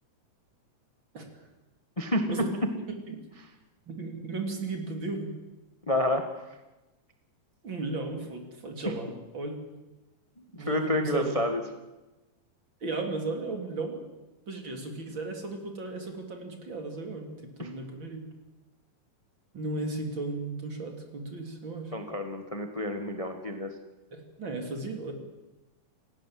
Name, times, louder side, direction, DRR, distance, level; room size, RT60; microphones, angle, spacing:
voice 1, 1.1-1.5 2.1-2.5 3.1-3.2 3.9-5.3 7.6-9.7 10.5-11.4 12.8-14.0 14.5-18.3 19.5-21.9 24.1-25.1, right 3 dB, 35° right, 3 dB, 3.8 m, -35 dB
voice 2, 5.9-6.3 10.4-11.6 17.6-17.7 21.9-23.7, left 1 dB, 30° left, 5 dB, 0.6 m, -29 dB
29.0 x 17.0 x 7.7 m, 1.1 s
omnidirectional pair, 3.7 m